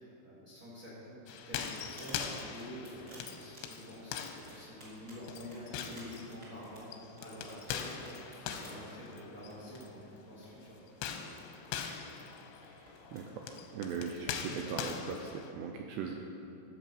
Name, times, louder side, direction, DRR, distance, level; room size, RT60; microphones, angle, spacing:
voice 1, 0.0-6.9 7.2-8.2 8.5-10.8, equal, 65° right, -8 dB, 0.9 m, -48 dB
sound 1, 1.3-9.9 10.9-15.5, left 8 dB, 85° left, 2.8 m, -42 dB
sound 2, 1.6-14.3, equal, 25° right, 2.2 m, -56 dB
voice 2, 13.1-16.1, right 5 dB, 85° right, 2 dB, 2.5 m, -39 dB
13.5 x 7.6 x 5.2 m, 2.7 s
omnidirectional pair, 5.5 m